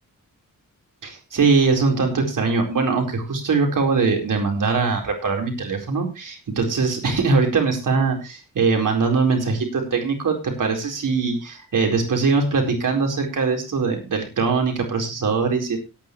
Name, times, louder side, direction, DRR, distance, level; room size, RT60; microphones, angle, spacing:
voice 1, 1.0-15.8, right 4 dB, 65° right, 2 dB, 4.4 m, -21 dB
17.5 x 9.9 x 3.2 m, 0.27 s
wide cardioid pair, 110°, 34 cm